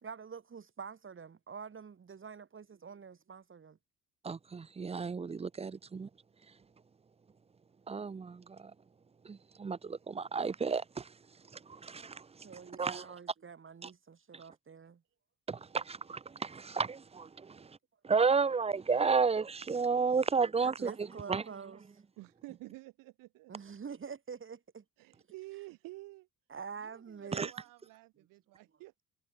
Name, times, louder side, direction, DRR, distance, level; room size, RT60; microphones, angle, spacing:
voice 1, 0.0-3.8 12.4-15.0 20.6-21.8 23.5-24.8 26.5-27.5, right 6 dB, 40° right, 2.7 m, -46 dB
voice 2, 4.2-6.1 7.9-8.7 9.3-11.1 11.7-12.2 12.8-13.0 13.8-13.9 15.5-17.7 18.0-21.4 27.3-27.5, right 5 dB, 20° right, 0.5 m, -32 dB
voice 3, 22.2-23.5 25.0-26.3 26.8-29.0, right 20 dB, 90° right, 3.1 m, -50 dB
supercardioid pair, 75°, 32 cm